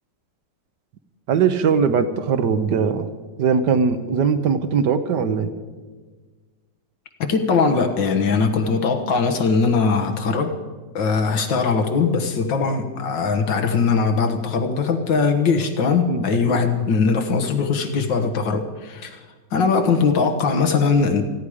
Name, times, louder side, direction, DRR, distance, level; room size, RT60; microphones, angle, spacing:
voice 1, 1.3-3.1 3.4-5.5 16.1-16.9, right 6 dB, 70° right, 9 dB, 1.5 m, -21 dB
voice 2, 7.2-10.6 11.0-19.2 19.5-21.2, left 5 dB, 80° left, 5 dB, 2.0 m, -20 dB
28.5 x 10.0 x 4.9 m, 1.4 s
omnidirectional pair, 2.0 m